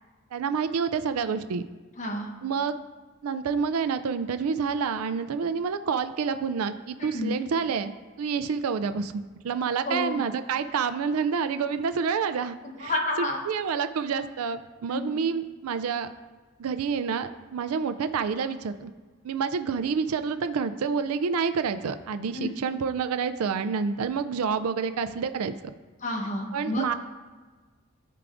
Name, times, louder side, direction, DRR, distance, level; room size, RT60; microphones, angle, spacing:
voice 1, 0.3-1.6 2.4-2.8 3.2-12.9 13.5-16.1 16.6-18.9 19.2-25.5 26.5-26.9, right 6 dB, 85° right, 11 dB, 0.4 m, -28 dB
voice 2, 2.0-2.3 7.0-7.4 9.9-10.2 12.8-13.4 14.9-15.1 22.3-22.6 26.0-26.8, left 2 dB, 35° left, 1 dB, 1.0 m, -30 dB
13.5 x 4.7 x 2.6 m, 1.4 s
head